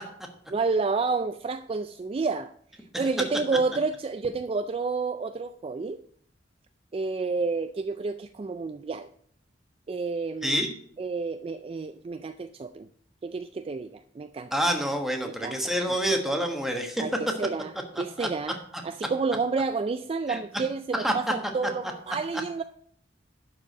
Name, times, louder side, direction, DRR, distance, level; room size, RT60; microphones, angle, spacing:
voice 1, 0.5-2.5 3.0-6.0 6.9-9.1 9.9-10.6 11.0-12.9 13.2-14.5 15.3-15.6 17.0-17.1 17.4-17.7 18.0-18.6 18.8-22.6, right 4 dB, 30° right, 10 dB, 0.3 m, -30 dB
voice 2, 10.4-10.7 14.5-17.0 17.9-18.3 20.3-20.4 20.9-21.1 21.8-21.9, equal, ahead, 3 dB, 1.3 m, -27 dB
11.5 x 4.9 x 6.1 m, 0.63 s
head